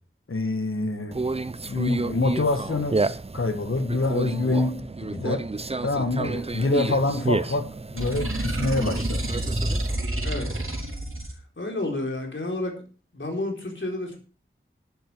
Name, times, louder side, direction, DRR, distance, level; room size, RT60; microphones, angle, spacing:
voice 1, 0.3-1.2 1.7-3.0 3.3-5.4 5.8-7.7 7.9-9.3, left 2 dB, 80° left, 8 dB, 1.7 m, -26 dB
Conversation, 1.1-10.0, right 3 dB, 30° right, 0.6 m, -30 dB
sound 1, 8.0-11.3, right 1 dB, 80° right, 3.3 m, -28 dB
voice 2, 10.2-10.6 11.6-12.7 13.1-14.2, left 2 dB, 65° left, 1 dB, 4.3 m, -30 dB
12.0 x 10.0 x 4.7 m, 0.37 s
wide cardioid pair, 45°, 21 cm